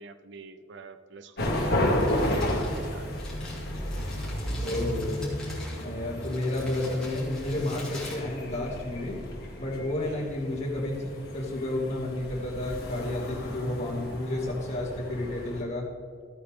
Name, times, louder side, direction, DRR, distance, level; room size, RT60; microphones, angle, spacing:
voice 1, 0.0-3.1 10.0-10.3, right 4 dB, 60° right, 11 dB, 0.5 m, -47 dB
sound 1, 1.4-15.6, left 1 dB, 50° left, 1.9 m, -33 dB
Crumpling crinkling, 1.9-9.0, left 2 dB, 5° left, 3.1 m, -46 dB
voice 2, 4.6-5.3 5.8-9.2 9.6-15.9, left 1 dB, 35° left, -4 dB, 2.5 m, -31 dB
14.5 x 8.6 x 3.7 m, 2.1 s
head